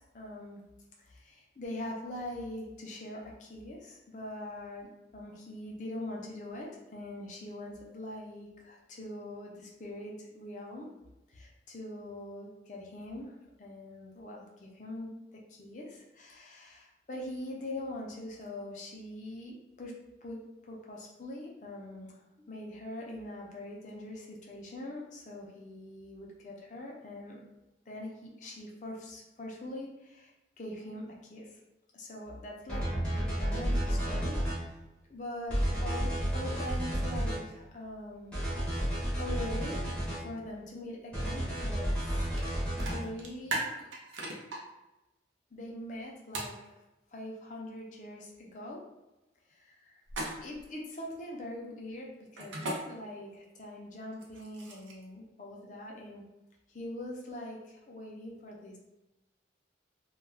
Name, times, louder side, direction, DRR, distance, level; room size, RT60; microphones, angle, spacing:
voice 1, 0.1-0.6 1.0-10.9 11.3-19.9 20.2-27.4 27.9-30.3 30.6-31.6 31.9-34.8 35.1-42.3 42.8-43.9 45.5-46.8 47.1-48.8 49.5-50.0 50.4-56.2 56.7-58.8, left 1 dB, 40° left, -2 dB, 0.5 m, -43 dB
sound 1, 32.7-34.6 35.5-37.4 38.3-40.2 41.1-43.0, equal, 5° left, 0.7 m, -31 dB
sound 2, 42.4-42.5 42.8-44.6 46.3-46.5 50.1-50.6 52.4-52.8 54.1-55.0, right 2 dB, 85° right, 0.6 m, -36 dB
2.3 x 2.2 x 3.3 m, 0.99 s
head